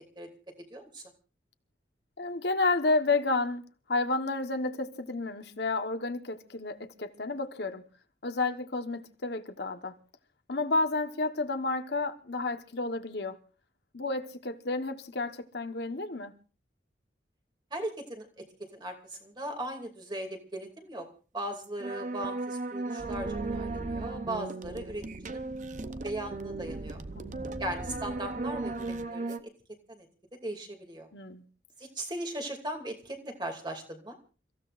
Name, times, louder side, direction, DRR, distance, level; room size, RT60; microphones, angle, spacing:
voice 1, 0.7-1.0 17.7-18.4 18.7-21.1 21.3-25.5 26.0-27.0 27.6-29.5 29.9-30.1 30.4-31.1 31.8-34.2, right 1 dB, 25° right, 2.6 m, -38 dB
voice 2, 2.2-3.6 3.9-7.8 8.2-9.9 10.5-13.4 13.9-16.3 27.1-27.6 31.1-31.4, left 3 dB, 65° left, 1.2 m, -31 dB
sound 1, 21.6-29.4, right 2 dB, 40° right, 0.8 m, -36 dB
29.5 x 15.5 x 2.5 m
head